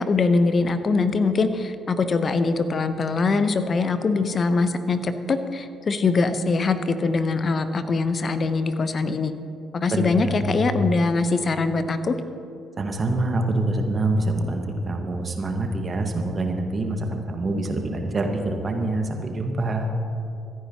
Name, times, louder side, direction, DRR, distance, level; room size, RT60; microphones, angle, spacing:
voice 1, 0.0-9.3 9.7-12.2, left 3 dB, 40° left, 10 dB, 0.9 m, -22 dB
voice 2, 9.9-10.4 12.8-19.9, right 2 dB, 35° right, 3 dB, 1.6 m, -25 dB
26.0 x 9.6 x 3.0 m, 2.6 s
figure-of-eight pair, 45°, 0 cm